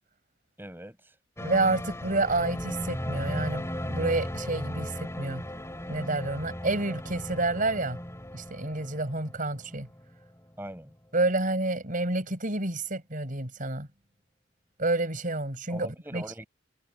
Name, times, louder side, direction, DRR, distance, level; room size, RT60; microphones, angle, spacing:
voice 1, 0.6-1.1 10.6-10.9 15.7-16.5, right 1 dB, 10° right, 7.4 m, -41 dB
sound 1, 1.4-10.5 10.8-10.9, equal, 15° left, 3.7 m, -36 dB
voice 2, 1.4-5.4 5.9-8.0 8.3-9.9 11.1-13.9 14.8-16.2, right 2 dB, 40° right, 6.2 m, -29 dB
head